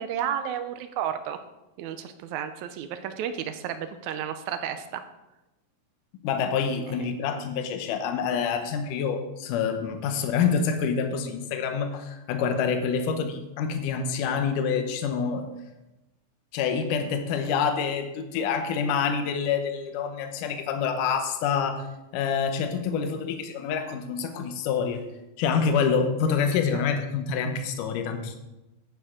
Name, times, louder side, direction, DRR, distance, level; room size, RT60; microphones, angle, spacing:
voice 1, 0.0-1.4 1.8-5.0 22.9-23.1 26.7-26.8, right 9 dB, 80° right, 9 dB, 1.8 m, -32 dB
voice 2, 6.2-15.5 16.5-21.9 22.1-25.0 25.4-28.4, left 6 dB, 75° left, 6 dB, 2.4 m, -27 dB
11.0 x 9.4 x 3.7 m, 0.97 s
omnidirectional pair, 3.9 m